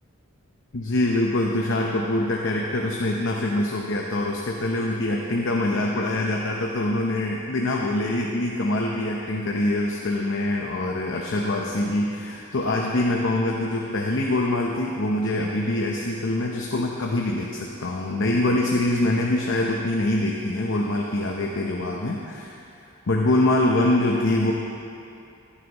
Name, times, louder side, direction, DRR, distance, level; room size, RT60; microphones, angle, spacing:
voice 1, 0.7-22.5 23.1-24.5, left 1 dB, 55° left, -1 dB, 0.8 m, -24 dB
15.5 x 11.0 x 3.0 m, 2.6 s
head